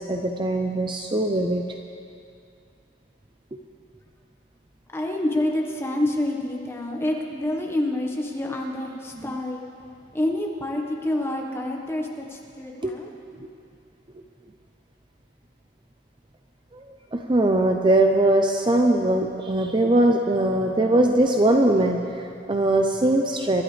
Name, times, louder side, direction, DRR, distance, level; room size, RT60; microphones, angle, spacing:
voice 1, 0.0-1.7 9.3-9.4 12.8-12.9 16.7-16.8 17.1-23.6, right 1 dB, 25° right, 3 dB, 0.6 m, -21 dB
voice 2, 4.9-9.7 10.1-13.1, left 1 dB, 15° left, 0 dB, 1.4 m, -27 dB
24.5 x 11.5 x 3.4 m, 2.4 s
head